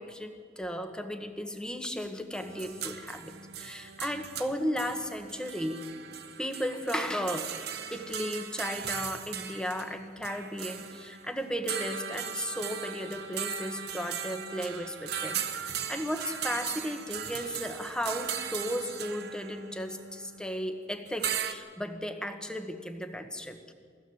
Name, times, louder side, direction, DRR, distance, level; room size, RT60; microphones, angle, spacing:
voice 1, 0.0-5.8 6.4-7.6 7.9-23.7, equal, 5° left, 6 dB, 1.3 m, -35 dB
sound 1, 2.3-21.5, right 8 dB, 55° right, 1.2 m, -38 dB
21.5 x 16.0 x 7.8 m, 2.1 s
head